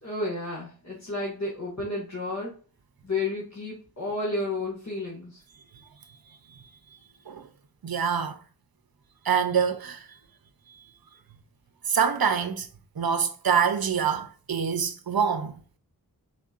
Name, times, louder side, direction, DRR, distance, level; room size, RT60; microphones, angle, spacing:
voice 1, 0.0-2.5 3.0-5.4, left 2 dB, 45° left, 1.6 m, -31 dB
voice 2, 7.8-8.4 9.2-10.1 11.9-12.7 13.0-15.6, right 7 dB, 70° right, 0.7 m, -25 dB
4.3 x 4.2 x 2.5 m
wide cardioid pair, 75°, 37 cm